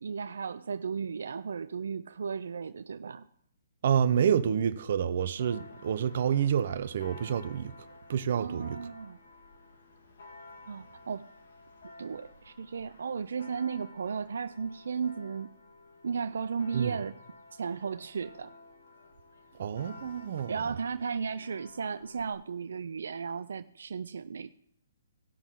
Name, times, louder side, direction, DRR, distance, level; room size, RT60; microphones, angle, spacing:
voice 1, 0.0-3.3 8.4-9.2 10.7-11.3 12.0-15.5 16.0-17.2 17.5-18.6 20.5-24.5, right 6 dB, 70° right, 0.5 m, -35 dB
voice 2, 3.8-7.7 8.1-8.8 16.7-17.0 19.6-20.7, right 8 dB, 50° right, 0.8 m, -28 dB
Church bell, 5.4-22.3, left 2 dB, 65° left, 2.0 m, -52 dB
18.5 x 6.1 x 3.8 m
hypercardioid pair, 165°, 0 cm